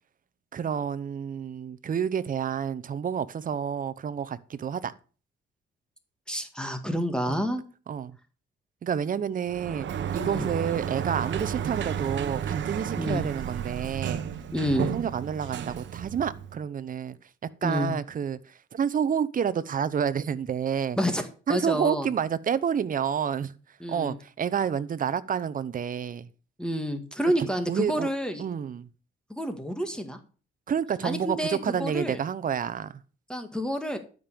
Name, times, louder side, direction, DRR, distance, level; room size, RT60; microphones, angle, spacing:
voice 1, 0.5-4.9 7.3-7.4 7.9-8.2 8.8-9.9 10.1-14.2 14.8-17.2 17.6-21.0 21.5-23.5 23.9-26.3 27.4-28.1 28.4-28.9 30.7-32.9, right 7 dB, 45° right, 0.8 m, -29 dB
voice 2, 6.3-7.6 10.2-10.5 13.0-13.2 14.5-14.9 17.6-17.9 21.0-22.1 23.8-24.2 26.6-28.4 29.3-30.2 31.0-32.2 33.3-34.0, equal, 5° left, 1.7 m, -29 dB
Sliding door, 9.5-16.6, right 9 dB, 65° right, 1.1 m, -32 dB
12.0 x 5.4 x 6.9 m
cardioid pair, 90°, 20 cm